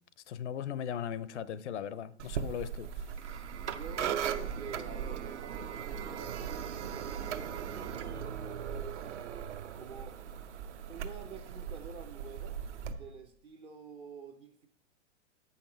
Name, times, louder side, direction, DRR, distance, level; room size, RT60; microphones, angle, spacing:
voice 1, 0.3-3.4, left 9 dB, 70° left, 0.6 m, -38 dB
sound 1, 2.2-12.9, right 8 dB, 70° right, 0.8 m, -38 dB
voice 2, 3.6-9.3 9.7-10.2 10.9-12.6 12.9-14.7, right 5 dB, 15° right, 0.3 m, -48 dB
Wind instrument woodwind instrument, 9.0-13.2, right 6 dB, 35° right, 0.9 m, -61 dB
8.5 x 5.8 x 4.3 m
hypercardioid pair, 110°, 37 cm